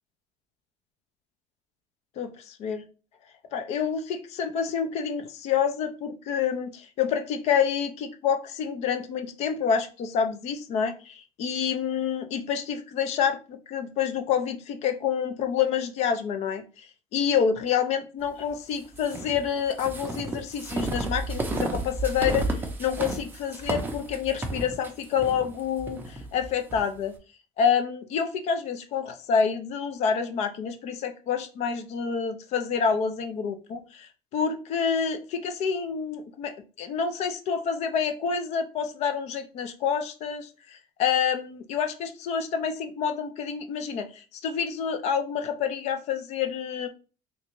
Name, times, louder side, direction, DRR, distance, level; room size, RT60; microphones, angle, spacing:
voice 1, 2.2-2.8 3.5-27.1 27.6-46.9, left 7 dB, 50° left, 8 dB, 0.5 m, -28 dB
sound 1, 18.9-26.8, right 2 dB, 15° right, 0.5 m, -32 dB
3.3 x 2.6 x 2.9 m, 0.34 s
cardioid pair, 160°, 14 cm